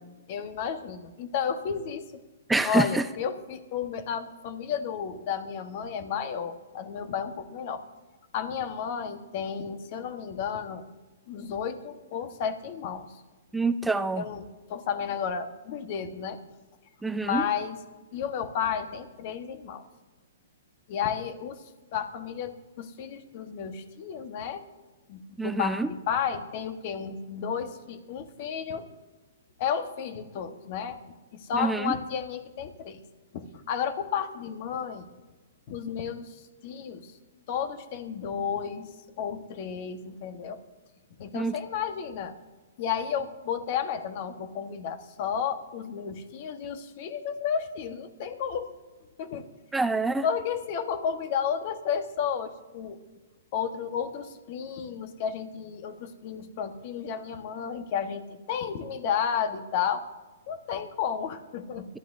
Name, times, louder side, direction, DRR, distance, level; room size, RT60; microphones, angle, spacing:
voice 1, 0.3-2.2 2.6-7.8 8.3-10.9 11.3-13.1 14.2-16.4 17.2-17.8 18.1-19.8 20.9-21.6 21.9-24.6 25.1-28.9 29.6-31.0 31.3-33.0 33.3-35.1 35.7-37.1 37.5-38.9 39.2-40.6 41.2-42.3 42.8-48.7 49.2-49.5 50.2-53.0 53.5-60.0 60.5-61.9, left 7 dB, 45° left, 8 dB, 1.3 m, -32 dB
voice 2, 2.5-3.0 13.5-14.2 17.0-17.4 25.4-25.9 31.5-31.9 41.3-41.6 49.7-50.2, right 3 dB, 5° right, 11 dB, 0.5 m, -26 dB
24.5 x 12.5 x 2.7 m, 1.2 s
hypercardioid pair, 135°, 0 cm